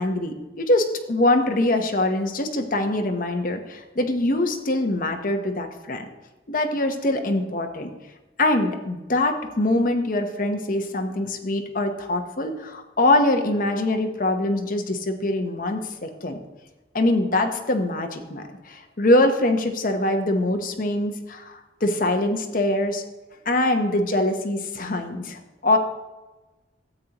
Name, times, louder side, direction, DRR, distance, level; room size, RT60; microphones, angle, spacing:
voice 1, 0.0-6.0 6.5-7.9 8.4-16.4 16.9-23.0 23.5-25.8, left 1 dB, 50° left, 4 dB, 0.9 m, -23 dB
13.0 x 7.8 x 2.9 m, 1.2 s
head